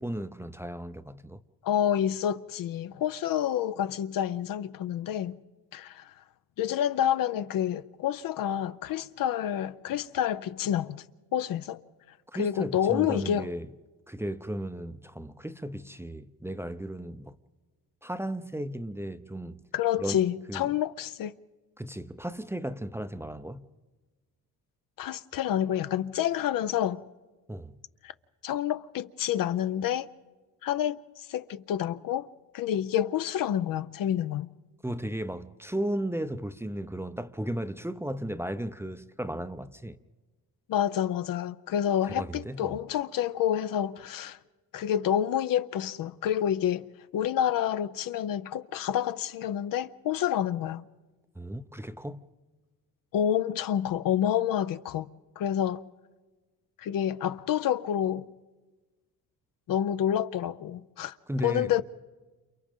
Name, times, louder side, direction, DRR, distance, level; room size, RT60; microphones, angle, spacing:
voice 1, 0.0-1.4 12.3-13.7 14.1-17.4 18.0-19.7 20.0-20.2 20.5-20.8 21.8-23.7 27.5-27.8 34.8-40.0 42.1-42.8 51.4-52.3 61.3-61.8, right 1 dB, 5° right, 0.6 m, -35 dB
voice 2, 1.6-5.4 5.7-6.1 6.6-11.0 11.3-11.8 12.4-13.5 19.7-21.3 25.0-27.0 28.0-28.1 28.4-30.1 30.6-32.3 32.5-34.5 40.7-44.4 44.7-46.9 47.1-50.8 53.1-55.8 56.8-58.3 59.7-61.2 61.4-61.8, left 10 dB, 60° left, 0.6 m, -28 dB
29.5 x 28.0 x 3.7 m
cardioid pair, 80°, 38 cm